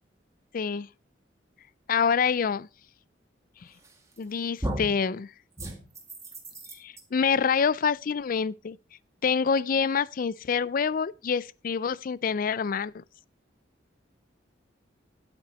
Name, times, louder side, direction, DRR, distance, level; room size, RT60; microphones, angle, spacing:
voice 1, 0.5-0.9 1.9-2.7 4.2-5.3 6.8-8.8 9.2-13.0, left 6 dB, 50° left, 0.4 m, -26 dB
sound 1, 3.8-4.2 4.6-5.0 5.6-7.0, right 1 dB, 15° right, 2.1 m, -35 dB
9.6 x 8.9 x 4.1 m
head